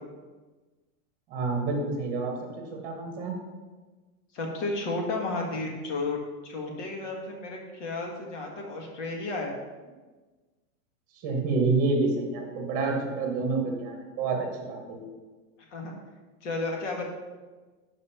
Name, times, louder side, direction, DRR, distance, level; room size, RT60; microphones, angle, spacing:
voice 1, 1.3-3.3 11.2-15.1, right 3 dB, 20° right, 1 dB, 1.1 m, -28 dB
voice 2, 4.3-9.6 15.7-15.9 16.4-17.1, left 2 dB, 55° left, 1 dB, 1.8 m, -32 dB
5.9 x 5.4 x 5.7 m, 1.3 s
supercardioid pair, 175°, 42 cm